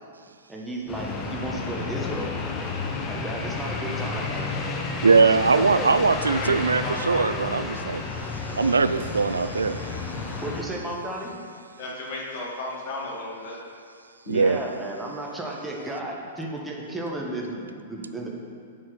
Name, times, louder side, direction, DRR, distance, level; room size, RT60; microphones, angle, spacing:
voice 1, 0.5-2.3 3.0-4.6 5.2-5.9 10.4-11.4 14.3-18.3, right 1 dB, 5° right, -2 dB, 1.4 m, -33 dB
sound 1, 0.9-10.6, left 3 dB, 25° left, 1.1 m, -31 dB
voice 2, 5.0-8.0 8.4-10.2 14.3-14.6, right 4 dB, 80° right, 12 dB, 0.3 m, -21 dB
voice 3, 6.1-7.3 11.8-13.6, left 2 dB, 50° left, -3 dB, 2.0 m, -34 dB
8.1 x 4.8 x 6.1 m, 2.2 s
figure-of-eight pair, 105°, 0 cm